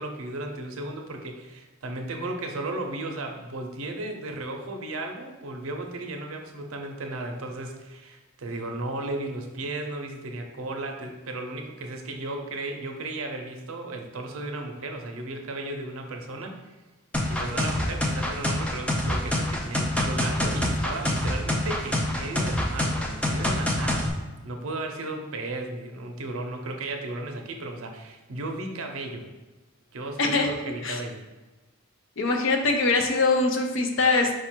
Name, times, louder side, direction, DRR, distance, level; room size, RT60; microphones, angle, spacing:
voice 1, 0.0-16.6 17.3-29.3 29.9-31.2, right 2 dB, 75° right, 4 dB, 0.6 m, -35 dB
sound 1, 17.1-24.1, left 1 dB, 5° left, 0.3 m, -26 dB
voice 2, 30.2-30.5 30.8-31.0 32.2-34.4, left 3 dB, 60° left, 4 dB, 0.5 m, -23 dB
4.7 x 2.4 x 4.4 m, 1.2 s
head